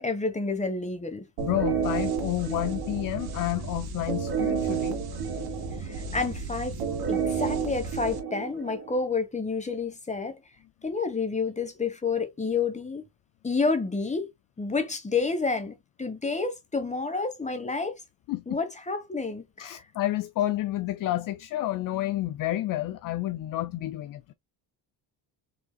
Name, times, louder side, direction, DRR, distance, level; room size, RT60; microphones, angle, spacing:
voice 1, 0.0-1.2 5.8-6.8 7.1-10.4 10.8-13.1 13.4-14.3 14.6-17.9 18.5-19.8, left 4 dB, 15° left, 1.2 m, -29 dB
voice 2, 1.4-5.0 18.3-18.6 19.6-24.3, left 15 dB, 50° left, 0.5 m, -30 dB
sound 1, 1.4-9.0, right 6 dB, 60° right, 1.8 m, -31 dB
5.0 x 3.8 x 2.3 m
cardioid pair, 125°, 42 cm